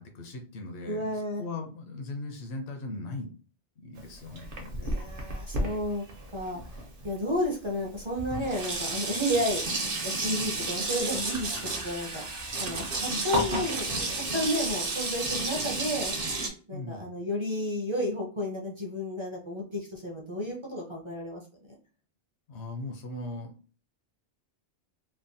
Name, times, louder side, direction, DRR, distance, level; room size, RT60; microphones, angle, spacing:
voice 1, 0.0-3.3 3.8-4.9 16.7-17.1 22.5-23.5, left 2 dB, 70° left, 3 dB, 0.9 m, -39 dB
voice 2, 0.9-1.4 4.8-6.0 6.3-6.6 7.0-12.2 12.6-16.1 16.7-21.4, equal, 35° right, -1 dB, 0.5 m, -32 dB
Sink (filling or washing), 4.0-7.1 7.8-7.9 8.2-16.5, right 2 dB, 55° right, 0.9 m, -32 dB
3.3 x 2.1 x 2.6 m, 0.38 s
omnidirectional pair, 1.2 m